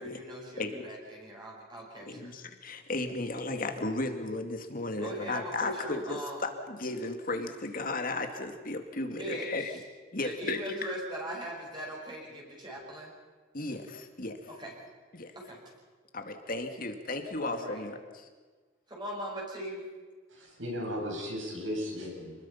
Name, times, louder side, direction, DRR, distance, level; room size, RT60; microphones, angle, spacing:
voice 1, 0.0-2.3 5.0-6.4 9.1-9.8 10.2-13.1 14.6-14.7 15.3-15.6 17.4-17.8 18.9-19.8, right 1 dB, 25° right, -2 dB, 6.0 m, -40 dB
voice 2, 2.1-9.7 10.1-10.8 13.5-14.4 15.1-15.3 16.1-18.3, left 2 dB, 45° left, 6 dB, 2.2 m, -35 dB
voice 3, 20.3-22.3, equal, 85° right, -1 dB, 7.9 m, -36 dB
27.5 x 21.0 x 5.8 m, 1.4 s
head